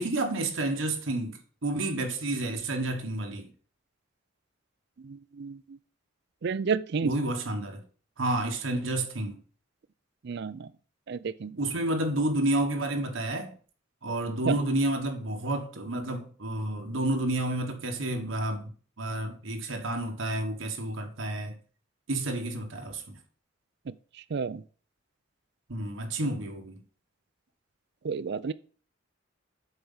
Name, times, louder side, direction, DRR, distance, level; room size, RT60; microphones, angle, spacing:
voice 1, 0.0-3.4 7.0-7.8 8.2-9.4 11.6-13.5 14.0-18.7 19.0-21.6 22.1-23.2 25.7-26.8, right 1 dB, 85° right, 1.4 m, -30 dB
voice 2, 5.0-5.8 6.4-7.1 10.2-10.7 11.1-11.6 14.4-14.6 23.9-24.0 24.3-24.6 28.0-28.5, right 5 dB, 60° right, 0.5 m, -31 dB
7.9 x 4.6 x 5.6 m
head